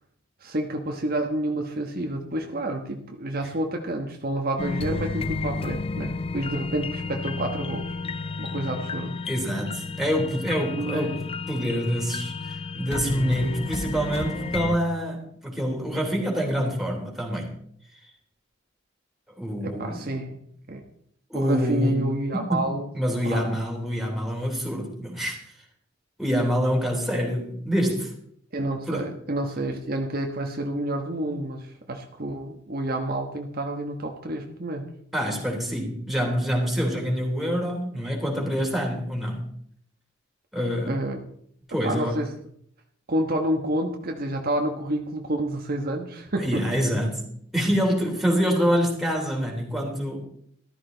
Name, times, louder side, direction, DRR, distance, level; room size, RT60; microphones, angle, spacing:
voice 1, 0.4-8.0 8.4-9.2 10.8-11.2 19.6-20.4 20.7-20.8 21.3-22.9 23.2-23.4 28.5-34.9 40.9-41.2 41.7-42.4 43.1-46.6, right 1 dB, 50° right, 3 dB, 1.3 m, -29 dB
sound 1, 4.6-14.8, left 4 dB, 30° left, 0.5 m, -32 dB
voice 2, 9.2-11.2 11.5-17.5 19.4-20.0 21.3-22.0 22.5-22.6 22.9-25.4 26.2-28.1 28.9-29.1 35.1-39.5 40.5-41.0 41.7-42.2 46.4-50.2, equal, ahead, -1 dB, 3.4 m, -26 dB
14.0 x 13.0 x 4.0 m, 0.66 s
head